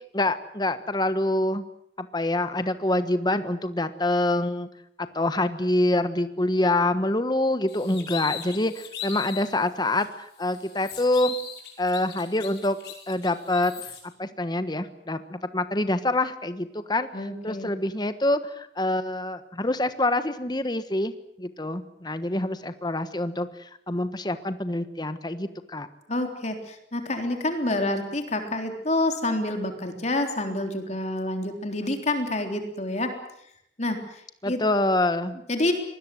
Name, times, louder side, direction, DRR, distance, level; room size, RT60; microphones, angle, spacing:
voice 1, 0.1-1.6 2.0-4.7 5.1-11.4 11.8-12.8 13.1-13.7 14.2-21.1 21.4-25.9 34.4-35.4, left 1 dB, 25° left, 11 dB, 1.3 m, -26 dB
sound 1, 7.7-9.5 10.0-10.1 10.4-14.0, left 8 dB, 65° left, 6.0 m, -38 dB
voice 2, 17.1-17.7 26.1-33.1 33.8-34.0 34.5-34.6 35.5-35.7, left 1 dB, 40° left, 5 dB, 3.6 m, -27 dB
26.0 x 20.5 x 7.9 m, 0.73 s
head